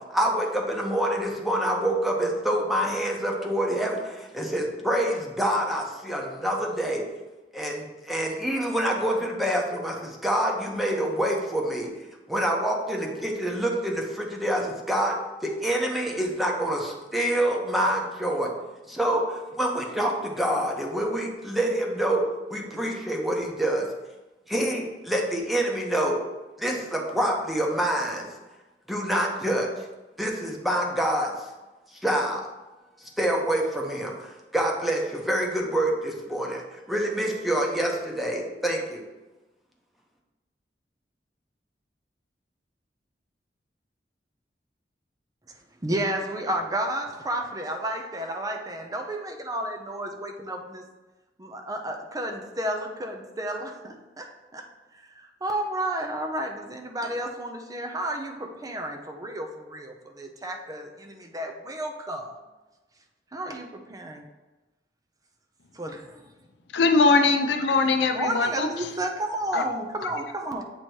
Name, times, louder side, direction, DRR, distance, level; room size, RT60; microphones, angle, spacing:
voice 1, 0.1-7.0 7.5-11.9 12.3-15.2 15.4-18.5 18.9-22.2 22.5-23.9 24.5-26.2 26.6-28.3 28.9-29.7 30.2-31.3 32.0-32.4 33.2-39.0, right 1 dB, ahead, -1 dB, 0.9 m, -26 dB
voice 2, 45.8-50.8 51.4-54.7 55.2-62.3 63.3-64.2 65.8-66.1 68.1-70.6, right 1 dB, 20° right, 3 dB, 0.5 m, -32 dB
voice 3, 66.7-68.9 69.5-69.7 70.0-70.1, left 3 dB, 75° left, 7 dB, 0.5 m, -21 dB
7.8 x 3.0 x 4.5 m, 1.1 s
head